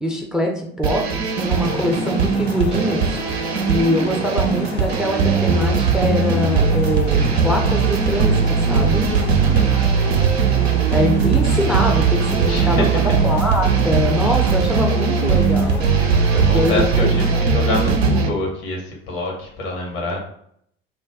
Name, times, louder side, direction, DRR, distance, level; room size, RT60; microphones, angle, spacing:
voice 1, 0.0-3.0 3.7-9.1 10.9-15.8 16.5-17.1, equal, ahead, 1 dB, 0.4 m, -23 dB
sound 1, 0.8-18.3, right 5 dB, 80° right, 0.5 m, -19 dB
sound 2, 1.5-17.4, left 4 dB, 85° left, 0.5 m, -35 dB
voice 2, 9.5-9.9 12.2-12.9 16.3-20.2, left 2 dB, 65° left, 0 dB, 1.0 m, -26 dB
2.4 x 2.1 x 3.5 m, 0.69 s
figure-of-eight pair, 60°, 31 cm